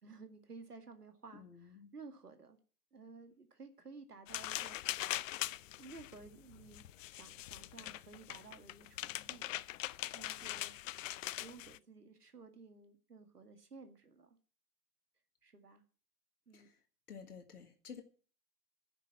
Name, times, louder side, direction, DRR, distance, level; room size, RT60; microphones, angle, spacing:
voice 1, 0.0-2.6 2.9-4.8 5.8-9.7 10.1-10.7 11.4-14.4 15.4-15.8 16.5-16.7, right 4 dB, 90° right, 2.1 m, -55 dB
voice 2, 1.3-1.9 16.5-18.0, left 6 dB, 80° left, 1.8 m, -52 dB
sound 1, 4.3-11.8, left 15 dB, 60° left, 0.6 m, -42 dB
10.5 x 6.9 x 9.3 m
figure-of-eight pair, 100°, 45 cm